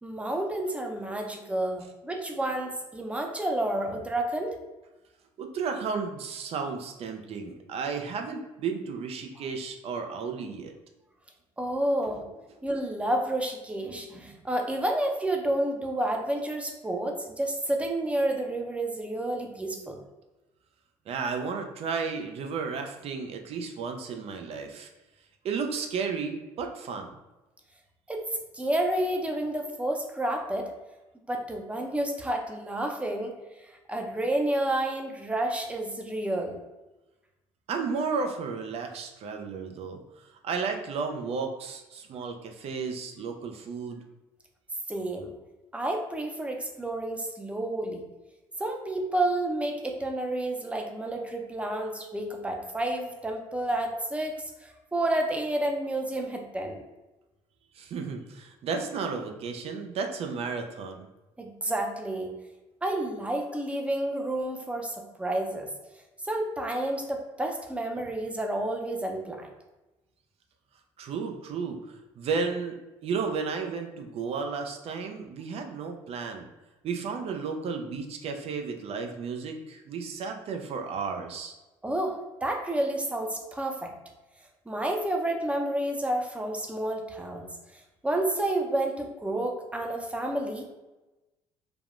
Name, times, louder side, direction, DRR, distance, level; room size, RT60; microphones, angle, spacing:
voice 1, 0.0-4.6 11.6-12.2 12.6-20.0 28.1-28.2 28.5-30.7 31.3-33.3 33.9-36.6 44.9-45.3 45.7-48.0 48.6-54.3 54.6-56.8 61.4-62.3 62.8-65.7 66.3-69.5 81.8-83.9 84.7-87.5 88.0-90.6, right 1 dB, 10° right, 2 dB, 0.6 m, -30 dB
voice 2, 5.4-10.7 21.1-24.9 25.4-27.1 37.7-44.0 57.7-61.1 71.0-72.8 73.0-76.5 76.8-81.5, right 5 dB, 55° right, 4 dB, 0.5 m, -33 dB
3.4 x 2.1 x 2.5 m, 1.1 s
supercardioid pair, 70°, 12 cm